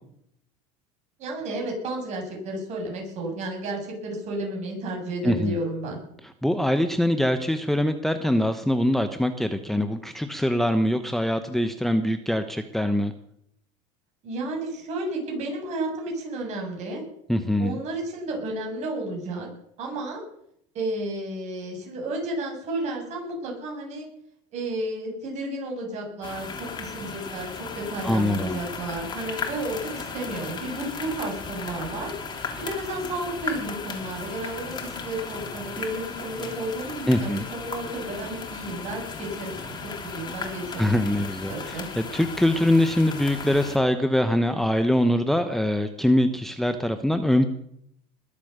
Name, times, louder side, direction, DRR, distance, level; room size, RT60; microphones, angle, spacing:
voice 1, 1.2-6.0 14.2-17.0 17.6-19.5 19.8-20.2 20.7-24.1 24.5-27.5 27.8-32.1 32.6-40.8 41.5-41.9, right 2 dB, 45° right, 1 dB, 7.5 m, -32 dB
voice 2, 5.2-5.6 6.4-13.1 17.3-17.8 28.0-28.6 37.1-37.4 40.8-41.5 42.1-47.5, left 1 dB, ahead, 8 dB, 0.9 m, -23 dB
sound 1, 26.2-43.8, left 5 dB, 25° left, 3.3 m, -36 dB
21.0 x 8.5 x 6.7 m, 0.72 s
supercardioid pair, 125°, 16 cm